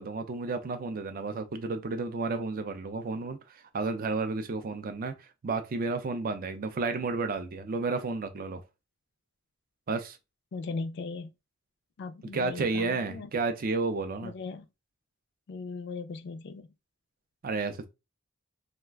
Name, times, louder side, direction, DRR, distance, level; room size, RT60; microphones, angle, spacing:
voice 1, 0.0-5.1 5.4-8.6 9.9-10.2 12.3-14.3 17.4-17.9, right 3 dB, 40° right, 0.4 m, -32 dB
voice 2, 10.5-11.3 12.0-13.3 14.2-14.7 15.5-16.7, left 4 dB, 50° left, 0.3 m, -38 dB
2.3 x 2.1 x 3.3 m
head